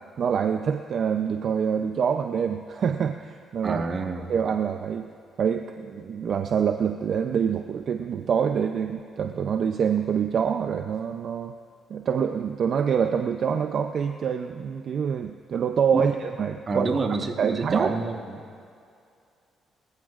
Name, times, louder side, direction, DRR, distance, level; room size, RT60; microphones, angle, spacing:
voice 1, 0.2-3.8 4.3-5.1 5.4-11.5 11.9-16.9 17.4-17.9, right 7 dB, 60° right, 6 dB, 0.6 m, -26 dB
voice 2, 3.6-4.3 15.9-16.1 16.7-18.6, right 3 dB, 40° right, 3 dB, 1.4 m, -28 dB
24.0 x 15.0 x 2.5 m, 2.4 s
cardioid pair, 90°, 0 cm